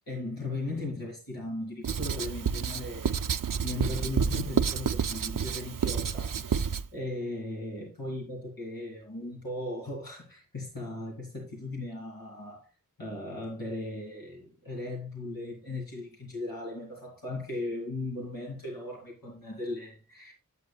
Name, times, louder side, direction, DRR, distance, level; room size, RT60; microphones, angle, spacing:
voice 1, 0.1-3.2 3.6-12.7 13.0-20.3, left 2 dB, 90° left, 2.6 m, -37 dB
Writing, 1.8-6.8, right 7 dB, 70° right, 0.5 m, -29 dB
9.5 x 8.3 x 2.3 m
wide cardioid pair, 40°, 34 cm